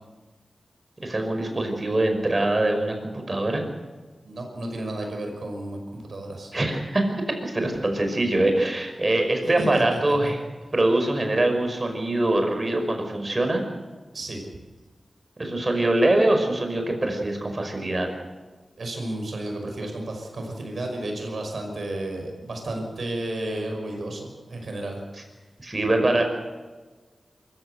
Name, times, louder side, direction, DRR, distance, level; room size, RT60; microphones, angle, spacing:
voice 1, 1.0-3.6 6.5-7.1 7.4-10.4 10.7-13.6 15.4-18.1 25.6-26.2, right 1 dB, 40° right, 4 dB, 5.3 m, -23 dB
voice 2, 4.2-6.5 9.6-10.2 14.1-14.5 18.8-25.0, right 1 dB, 75° right, 2 dB, 5.8 m, -32 dB
24.0 x 15.0 x 8.0 m, 1.3 s
wide cardioid pair, 65°, 0 cm